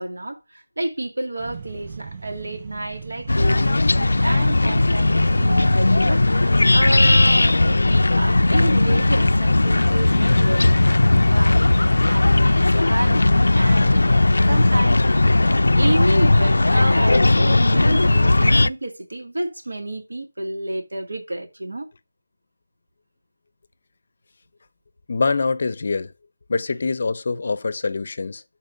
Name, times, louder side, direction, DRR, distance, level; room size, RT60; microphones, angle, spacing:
voice 1, 0.0-15.0 15.8-21.9, right 1 dB, 90° right, 2.1 m, -29 dB
sound 1, 1.4-14.1, right 5 dB, 20° right, 0.4 m, -40 dB
sound 2, 3.3-18.7, left 2 dB, 90° left, 0.3 m, -17 dB
voice 2, 25.1-26.1 26.5-28.4, left 4 dB, 40° left, 0.6 m, -24 dB
12.0 x 4.4 x 2.6 m
figure-of-eight pair, 175°, 0 cm